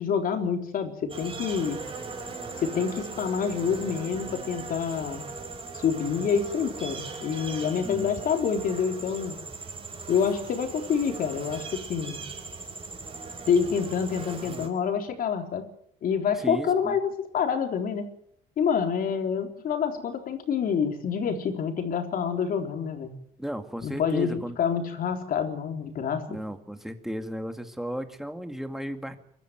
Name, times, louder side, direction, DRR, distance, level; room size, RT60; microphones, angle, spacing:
voice 1, 0.0-1.8 2.6-5.3 5.7-9.4 10.1-12.2 13.5-15.7 16.0-18.1 18.6-23.2 23.8-26.4, left 6 dB, 60° left, 5 dB, 3.9 m, -27 dB
sound 1, 1.1-14.7, right 3 dB, 30° right, 5.0 m, -39 dB
voice 2, 16.3-17.0 23.4-24.6 26.3-29.2, equal, ahead, 7 dB, 2.2 m, -34 dB
24.0 x 13.0 x 9.4 m, 0.72 s
cardioid pair, 110°, 17 cm